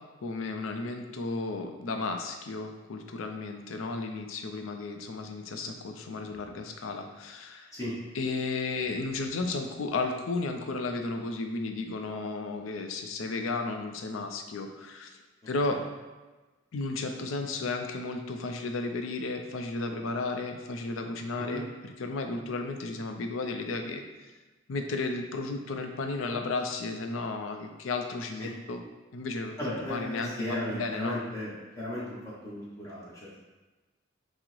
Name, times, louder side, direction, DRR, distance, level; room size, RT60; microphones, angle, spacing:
voice 1, 0.2-7.7 8.1-15.1 15.5-15.8 16.7-24.0 24.7-28.8 29.1-31.2, left 3 dB, 85° left, 5 dB, 0.5 m, -33 dB
voice 2, 29.6-32.2 32.4-33.3, left 1 dB, 15° left, -8 dB, 0.8 m, -35 dB
5.9 x 2.0 x 3.1 m, 1.2 s
head